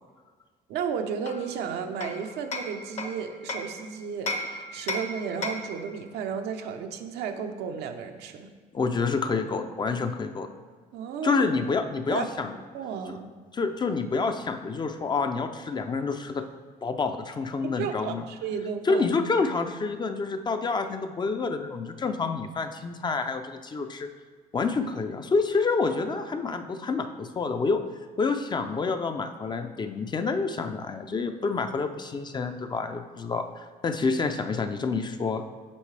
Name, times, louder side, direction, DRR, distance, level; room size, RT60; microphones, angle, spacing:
voice 1, 0.7-8.5 10.9-11.4 12.1-12.3 12.7-13.3 17.8-19.0, right 6 dB, 80° right, 5 dB, 0.7 m, -33 dB
Hammer, 1.3-3.8 4.3-5.8, left 2 dB, 45° left, 0.9 m, -34 dB
voice 2, 8.7-10.5 11.2-12.5 13.5-16.4 16.8-18.2 18.8-24.1 24.5-27.8 28.2-35.5, left 4 dB, 25° left, 7 dB, 0.5 m, -28 dB
8.4 x 5.6 x 3.3 m, 1.5 s
cardioid pair, 110°, 17 cm